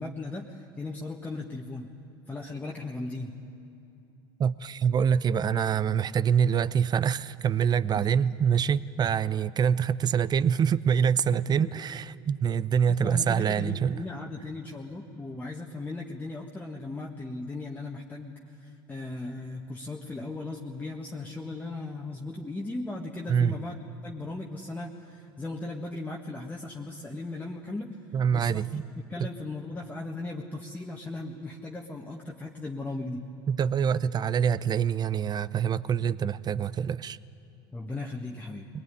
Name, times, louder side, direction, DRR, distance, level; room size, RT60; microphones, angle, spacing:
voice 1, 0.0-1.9 2.3-3.3 7.9-8.1 11.6-11.7 12.9-23.8 24.0-28.0 28.3-28.6 29.0-33.3 37.7-38.7, left 2 dB, 15° left, -1 dB, 1.7 m, -37 dB
voice 2, 4.4-14.0 23.3-23.5 28.1-28.8 29.2-29.3 33.5-37.2, right 7 dB, 35° right, 17 dB, 0.7 m, -25 dB
22.5 x 18.5 x 9.8 m, 2.8 s
hypercardioid pair, 85°, 12 cm